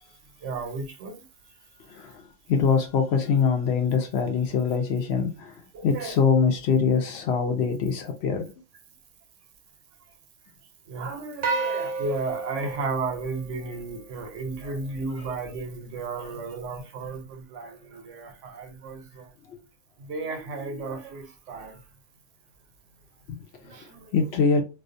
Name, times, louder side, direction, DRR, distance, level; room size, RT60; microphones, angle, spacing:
voice 1, 0.4-1.2 5.7-6.1 10.9-19.3 20.0-21.8 23.6-24.1, right 3 dB, 80° right, 1.0 m, -34 dB
voice 2, 1.9-2.2 2.5-8.5 14.6-14.7 16.2-16.3 19.5-19.6 23.3-23.8 24.1-24.6, left 5 dB, 65° left, 0.8 m, -24 dB
sound 1, 11.4-14.0, right 4 dB, 50° right, 0.5 m, -31 dB
2.4 x 2.2 x 2.5 m
omnidirectional pair, 1.2 m